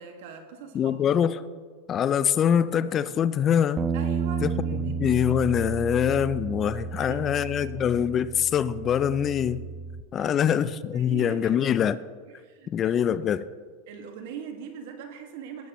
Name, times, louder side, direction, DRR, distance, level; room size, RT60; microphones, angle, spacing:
voice 1, 0.0-1.0 3.9-5.0 6.7-7.5 7.7-8.0 10.2-10.6 10.9-11.7 12.3-13.0 13.9-15.7, right 7 dB, 70° right, 1.8 m, -42 dB
voice 2, 0.7-1.4 1.9-3.8 4.4-4.5 4.9-9.6 10.1-12.0 12.7-13.4, left 9 dB, 30° left, 0.4 m, -24 dB
Bass guitar, 3.8-10.0, right 6 dB, 30° right, 0.7 m, -32 dB
16.5 x 8.7 x 3.1 m
hypercardioid pair, 115°, 0 cm